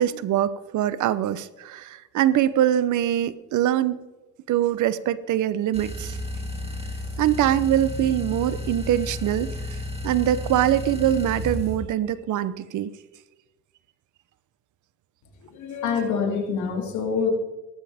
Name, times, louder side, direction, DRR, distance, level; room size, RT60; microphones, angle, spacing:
voice 1, 0.0-4.0 4.5-6.2 7.2-9.5 10.0-12.9, right 11 dB, 75° right, 15 dB, 0.8 m, -23 dB
sound 1, 5.7-11.8, left 1 dB, 20° right, 3.1 m, -32 dB
voice 2, 15.5-17.3, left 6 dB, 75° left, 1 dB, 3.0 m, -26 dB
17.5 x 13.5 x 3.5 m, 1.1 s
cardioid pair, 90°, 30 cm